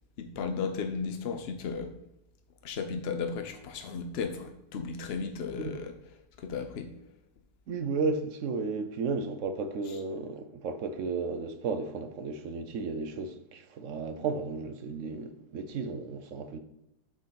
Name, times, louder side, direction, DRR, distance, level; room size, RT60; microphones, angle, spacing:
voice 1, 0.2-1.9 2.6-6.9 9.9-10.0, left 5 dB, 75° left, 0.5 m, -35 dB
voice 2, 7.7-16.6, right 4 dB, 60° right, 0.8 m, -34 dB
7.3 x 4.0 x 5.7 m
omnidirectional pair, 1.9 m